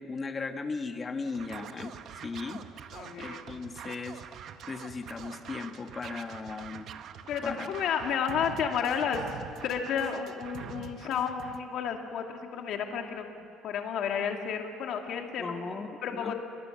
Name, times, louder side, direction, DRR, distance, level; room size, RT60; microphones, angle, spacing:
voice 1, 0.0-2.0 2.2-2.6 3.2-4.2 4.7-6.9 7.4-7.7 15.4-16.3, left 4 dB, 20° left, 7 dB, 1.2 m, -37 dB
Scratching (performance technique), 1.3-11.6, right 8 dB, 45° right, 1.0 m, -45 dB
voice 2, 2.9-3.4 7.3-9.3 9.6-15.6 16.0-16.3, left 7 dB, 55° left, 3 dB, 2.5 m, -32 dB
30.0 x 21.0 x 7.4 m, 2.8 s
cardioid pair, 160°, 0 cm